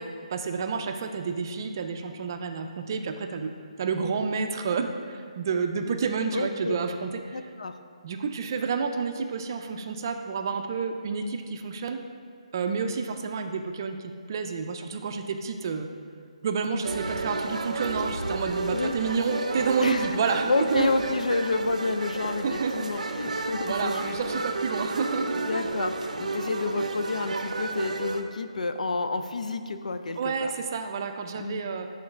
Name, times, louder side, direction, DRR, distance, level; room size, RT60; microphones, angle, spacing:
voice 1, 0.0-3.5 3.8-7.4 8.0-12.0 12.5-15.9 16.4-21.0 22.4-22.9 23.3-25.5 30.2-31.9, right 5 dB, 30° right, 6 dB, 0.4 m, -30 dB
voice 2, 6.3-6.7 7.3-7.7 18.7-18.9 19.8-24.2 25.4-30.5 31.3-31.6, left 3 dB, 90° left, 8 dB, 0.5 m, -30 dB
sound 1, 16.8-28.2, right 3 dB, 85° right, 0.5 m, -31 dB
5.3 x 3.8 x 5.9 m, 2.2 s
hypercardioid pair, 170°, 4 cm